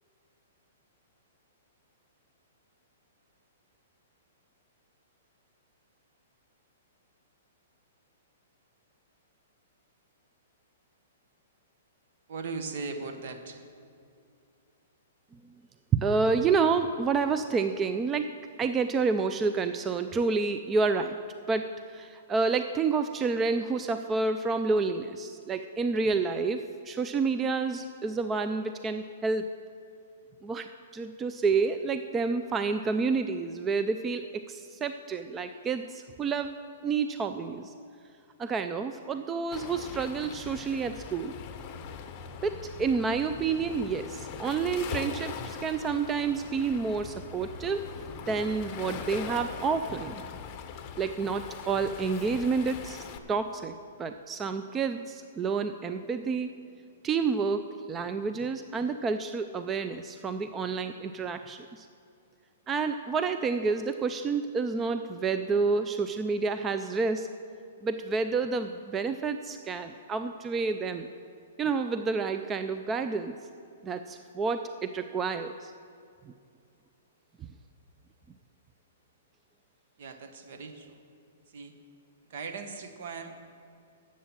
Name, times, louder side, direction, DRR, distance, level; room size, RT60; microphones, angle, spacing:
voice 1, 12.3-13.6 80.0-81.0 81.5-81.7 82.3-83.3, right 4 dB, 60° right, 6 dB, 1.3 m, -38 dB
voice 2, 15.9-21.2 21.5-29.6 30.4-36.5 36.8-37.7 38.4-41.3 42.4-47.9 48.3-50.2 51.0-56.5 57.0-61.9 62.7-67.3 67.8-71.1 71.6-73.4 73.8-75.7 76.2-76.3, right 4 dB, 20° right, 9 dB, 0.4 m, -29 dB
Waves surf, 39.5-53.2, left 7 dB, 30° left, 0.8 m, -41 dB
11.0 x 7.5 x 7.2 m, 2.4 s
hypercardioid pair, 140°, 0 cm